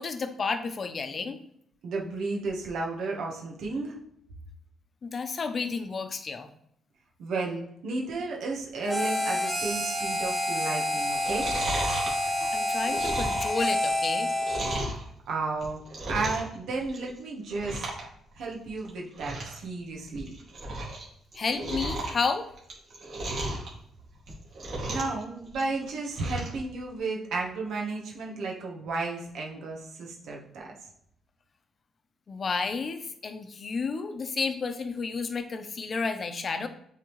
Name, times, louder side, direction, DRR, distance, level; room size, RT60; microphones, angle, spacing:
voice 1, 0.0-1.4 5.0-6.5 12.5-14.3 21.3-22.5 32.3-36.7, left 4 dB, 40° left, 9 dB, 0.7 m, -31 dB
voice 2, 1.8-4.0 7.2-11.5 15.3-15.8 16.1-17.9 18.3-20.3 24.8-30.7, right 3 dB, 75° right, -1 dB, 1.3 m, -33 dB
Harmonica, 8.9-14.9, left 1 dB, 5° right, 1.5 m, -28 dB
Chewing mastication, 11.0-15.0 15.5-16.5 16.8-17.2 17.5-18.0 18.3-18.4 18.8-18.9 19.1-19.6 20.0-21.0 21.3-23.7 24.2-25.2 25.5-26.6 26.9-27.0, right 1 dB, 55° right, 2.3 m, -34 dB
8.1 x 3.7 x 3.2 m, 0.71 s
cardioid pair, 90°, 0 cm